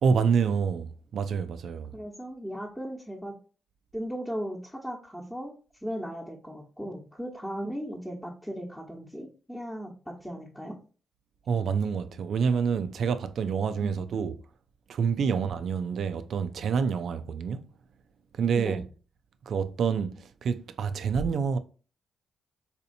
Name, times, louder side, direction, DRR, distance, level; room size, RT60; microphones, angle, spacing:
voice 1, 0.0-1.9 11.5-14.4 14.9-17.7 18.4-18.8 19.5-21.6, right 6 dB, 70° right, 0.4 m, -27 dB
voice 2, 1.9-3.4 3.9-5.5 5.8-10.8 13.8-14.0 18.5-18.8, equal, 5° left, 1.0 m, -37 dB
4.1 x 2.7 x 2.6 m
cardioid pair, 65°, 0 cm